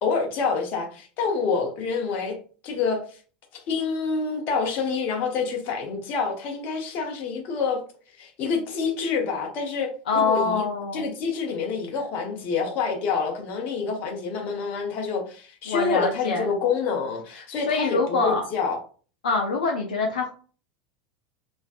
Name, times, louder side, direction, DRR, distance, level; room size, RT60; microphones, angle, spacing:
voice 1, 0.0-2.4 2.6-3.0 3.5-7.8 8.2-10.6 10.9-18.8, left 5 dB, 40° left, 0.9 m, -27 dB
voice 2, 10.1-11.1 15.7-16.5 17.7-18.4 19.2-20.3, left 4 dB, 65° left, 0.5 m, -24 dB
3.1 x 2.6 x 2.4 m
figure-of-eight pair, 80°, 5 cm